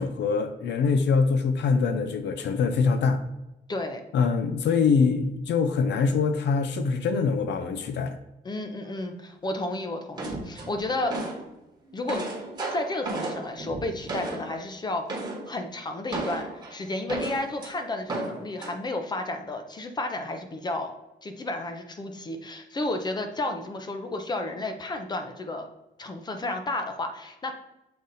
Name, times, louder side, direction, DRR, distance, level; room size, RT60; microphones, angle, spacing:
voice 1, 0.0-3.2 4.1-8.2, left 5 dB, 75° left, 8 dB, 0.6 m, -24 dB
voice 2, 3.7-4.0 8.4-11.2 11.9-12.3 12.7-15.1 15.5-20.9 21.2-25.7 26.0-27.5, left 2 dB, 25° left, 6 dB, 0.6 m, -32 dB
sound 1, 10.2-11.5 11.8-14.6 15.1-15.5 16.1-17.7 18.1-18.8, right 2 dB, 25° right, 1.2 m, -34 dB
6.7 x 3.9 x 4.0 m, 0.95 s
wide cardioid pair, 175°, 18 cm